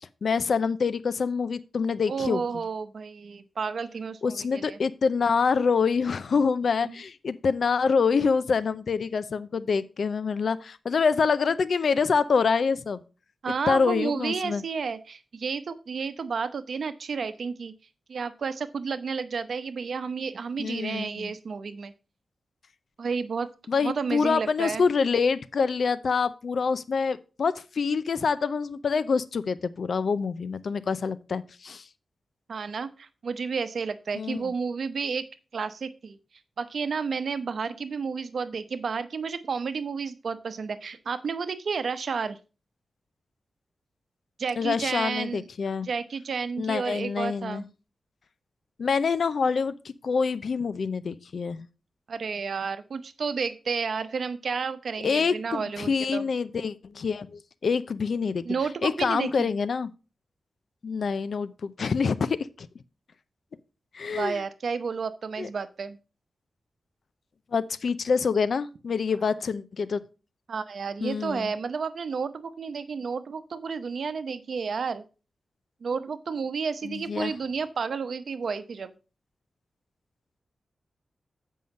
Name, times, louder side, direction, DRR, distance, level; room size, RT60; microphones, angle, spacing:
voice 1, 0.2-2.4 4.2-13.0 13.7-14.6 20.6-21.3 23.7-31.8 34.1-34.4 44.6-45.9 46.6-47.6 48.8-51.7 55.0-58.4 58.8-59.9 60.8-62.7 63.9-64.4 65.4-65.5 67.5-70.0 71.0-71.5 76.8-77.3, left 5 dB, 70° left, 0.5 m, -26 dB
voice 2, 2.1-4.8 6.8-7.0 13.4-17.7 18.1-21.9 23.0-23.5 23.8-24.8 32.5-35.3 35.5-36.2 36.6-42.4 44.4-45.4 45.8-47.7 52.1-56.2 58.4-59.5 64.1-66.0 70.5-75.0 75.8-78.9, right 5 dB, 70° right, 0.8 m, -31 dB
7.8 x 5.5 x 5.3 m
wide cardioid pair, 80°, 0 cm